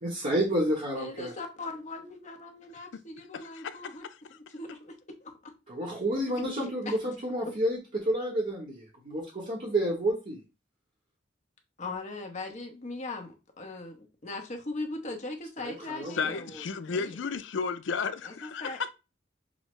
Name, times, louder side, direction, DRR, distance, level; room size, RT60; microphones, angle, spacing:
voice 1, 0.0-1.3 5.7-10.4 15.6-16.3, right 1 dB, 40° right, 1.0 m, -30 dB
voice 2, 1.0-4.0 4.3-5.3 6.4-7.1 11.8-16.6 16.9-17.1 18.2-18.8, left 2 dB, 40° left, 0.9 m, -39 dB
voice 3, 3.3-4.1 16.1-18.9, left 5 dB, 65° left, 0.4 m, -33 dB
6.2 x 2.1 x 3.1 m
head